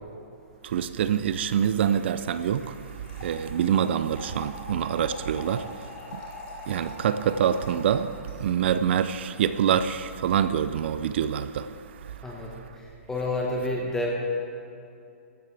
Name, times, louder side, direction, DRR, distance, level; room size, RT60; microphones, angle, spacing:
voice 1, 0.6-12.3, right 9 dB, 50° right, 0.4 m, -26 dB
Trickle dribble / Fill (with liquid), 1.0-8.3, left 3 dB, 40° left, 3.0 m, -44 dB
voice 2, 12.2-14.1, left 2 dB, 5° left, 1.3 m, -30 dB
15.5 x 12.5 x 3.4 m
hypercardioid pair, 155°, 8 cm